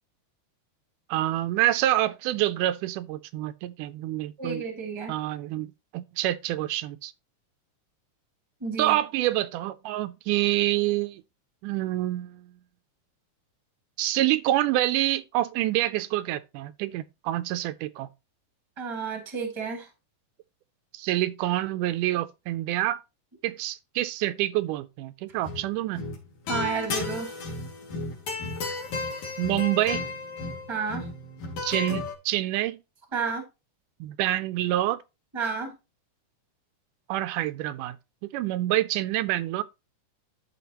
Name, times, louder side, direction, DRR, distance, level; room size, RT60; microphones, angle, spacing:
voice 1, 1.1-4.6 5.1-5.7 5.9-7.1 8.8-11.2 11.6-12.5 14.0-18.1 20.9-23.0 23.4-26.0 29.4-30.0 31.6-32.8 34.0-35.0 37.1-38.0 38.3-39.6, right 15 dB, 85° right, 2.1 m, -27 dB
voice 2, 4.4-5.1 8.6-9.0 18.8-19.9 26.5-27.3 30.7-31.1 33.1-33.4 35.3-35.7, right 5 dB, 10° right, 1.4 m, -31 dB
sound 1, 25.3-25.7 25.9-32.1, left 3 dB, 65° left, 3.4 m, -33 dB
13.0 x 4.9 x 2.9 m
omnidirectional pair, 3.6 m